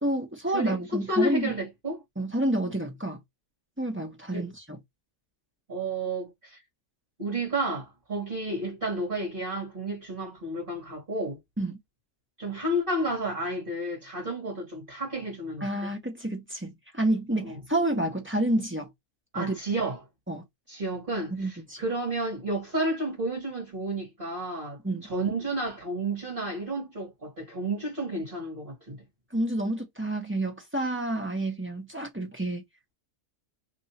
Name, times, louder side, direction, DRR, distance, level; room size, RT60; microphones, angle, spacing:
voice 1, 0.0-1.5 2.2-3.2 3.8-4.8 11.6-11.8 15.6-18.9 19.3-19.5 20.3-20.4 21.3-21.8 24.8-25.0 29.3-32.6, right 1 dB, 10° right, 0.8 m, -29 dB
voice 2, 1.1-2.0 4.3-4.5 5.7-6.6 7.2-11.4 12.4-15.9 17.4-17.6 19.3-20.0 20.7-29.0, right 1 dB, 35° right, 1.5 m, -31 dB
3.0 x 2.7 x 4.2 m
omnidirectional pair, 1.6 m